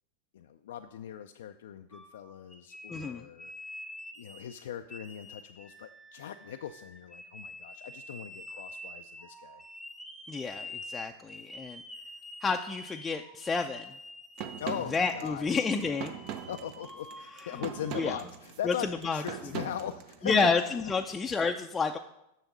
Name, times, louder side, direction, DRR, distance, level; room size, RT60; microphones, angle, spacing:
voice 1, 0.3-3.5 3.8-3.9 4.2-9.6 14.6-16.0 16.5-20.5, left 10 dB, 75° left, 7 dB, 0.4 m, -40 dB
sound 1, 1.9-4.6 4.9-18.3, left 1 dB, ahead, 1.0 m, -47 dB
voice 2, 2.9-3.3 10.3-11.8 12.4-13.9 14.9-16.1 17.4-17.6 18.0-18.2 18.6-19.2 20.2-22.0, left 4 dB, 15° left, 3 dB, 0.5 m, -30 dB
sound 2, 14.4-20.7, right 8 dB, 50° right, 0.7 m, -41 dB
6.7 x 6.2 x 6.0 m, 0.85 s
hypercardioid pair, 105°, 0 cm